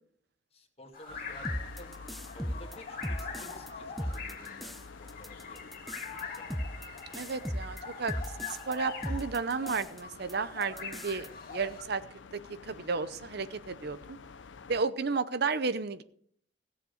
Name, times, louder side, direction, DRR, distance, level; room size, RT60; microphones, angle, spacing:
voice 1, 0.5-1.5 1.8-1.9 2.3-5.6 6.1-6.5, left 1 dB, 35° left, 3 dB, 2.1 m, -52 dB
sound 1, 0.9-11.8, left 5 dB, 50° left, 2.7 m, -43 dB
sound 2, 1.1-14.8, left 4 dB, 80° left, 0.6 m, -50 dB
sound 3, 1.5-3.7 4.0-4.8 5.1-8.7 9.0-10.0 10.3-10.4 10.6-11.3, equal, ahead, 0.6 m, -37 dB
voice 2, 7.1-12.0 12.3-14.2 14.7-16.0, right 4 dB, 60° right, 13 dB, 0.7 m, -33 dB
16.5 x 7.4 x 6.5 m, 0.62 s
head